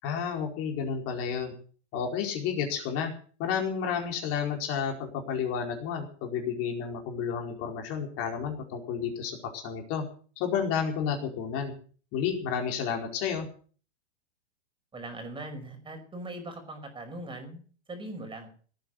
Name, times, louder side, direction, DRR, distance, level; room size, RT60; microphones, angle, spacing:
voice 1, 0.0-1.5 1.9-3.1 3.4-10.0 10.4-11.7 12.1-13.5, left 7 dB, 40° left, 3 dB, 4.7 m, -31 dB
voice 2, 14.9-17.6 17.9-18.5, right 1 dB, 15° right, 6 dB, 5.4 m, -40 dB
18.0 x 9.3 x 8.0 m, 0.43 s
hypercardioid pair, 125°, 35 cm